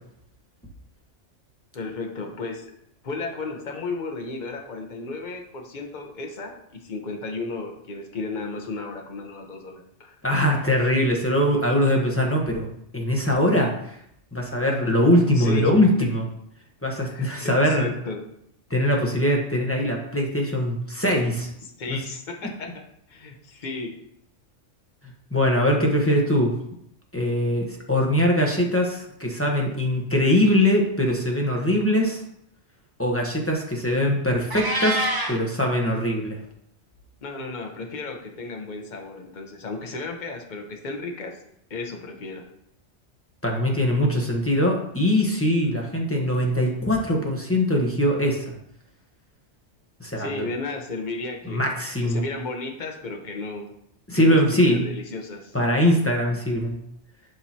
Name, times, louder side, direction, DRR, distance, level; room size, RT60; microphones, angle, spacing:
voice 1, 1.7-2.7 3.0-10.2 15.3-15.7 17.0-18.2 21.6-22.8 23.1-23.9 37.2-41.4 41.7-42.5 50.2-51.7 52.0-53.6 54.1-55.6, left 3 dB, 40° left, 2 dB, 1.1 m, -34 dB
voice 2, 10.2-14.0 14.3-16.2 16.8-17.9 18.7-21.5 21.9-22.0 25.3-26.5 27.1-32.2 33.0-36.4 43.4-48.6 50.0-50.4 51.4-52.2 54.1-54.8 55.5-56.8, left 1 dB, 10° left, -1 dB, 1.1 m, -22 dB
Meow, 34.5-35.4, right 1 dB, 20° right, 1.1 m, -25 dB
10.5 x 4.7 x 2.9 m, 0.74 s
omnidirectional pair, 1.3 m